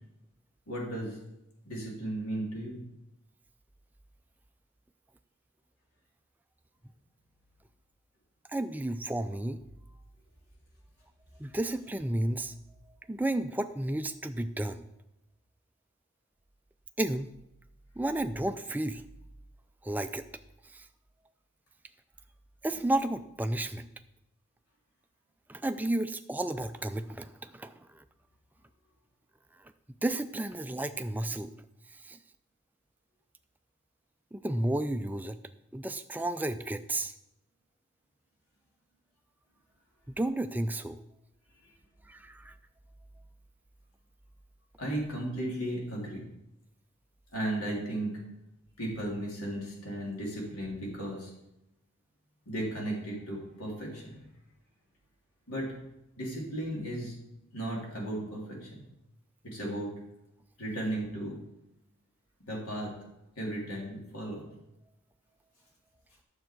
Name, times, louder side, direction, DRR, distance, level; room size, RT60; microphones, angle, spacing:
voice 1, 0.7-1.2 1.6-2.8 44.8-46.2 47.3-48.2 48.8-51.3 52.4-54.2 55.5-55.7 56.2-57.1 57.5-58.8 59.4-59.9 60.6-61.4 62.5-62.9 63.4-64.5, right 1 dB, 75° left, -3 dB, 3.3 m, -35 dB
voice 2, 8.5-9.6 11.4-12.5 13.1-14.8 17.0-17.3 18.0-19.0 19.8-20.2 20.7-20.9 22.6-23.9 25.5-28.0 30.0-31.5 32.0-32.2 34.3-35.4 35.7-37.1 40.1-41.0 42.1-42.5, right 1 dB, 10° right, 10 dB, 0.3 m, -32 dB
10.0 x 7.3 x 4.6 m, 0.89 s
head